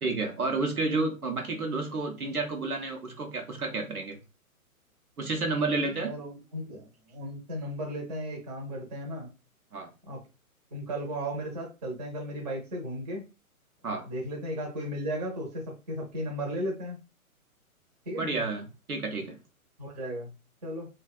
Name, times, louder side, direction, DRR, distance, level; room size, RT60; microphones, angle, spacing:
voice 1, 0.0-4.2 5.2-6.1 9.7-9.9 13.8-14.1 18.1-19.4, right 3 dB, 85° right, 3 dB, 0.8 m, -30 dB
voice 2, 5.9-9.3 10.1-10.2 10.7-13.2 14.1-17.0 18.1-18.3 19.8-20.3 20.6-20.9, equal, 30° right, 0 dB, 0.8 m, -35 dB
2.7 x 2.3 x 2.3 m, 0.29 s
figure-of-eight pair, 125°, 43 cm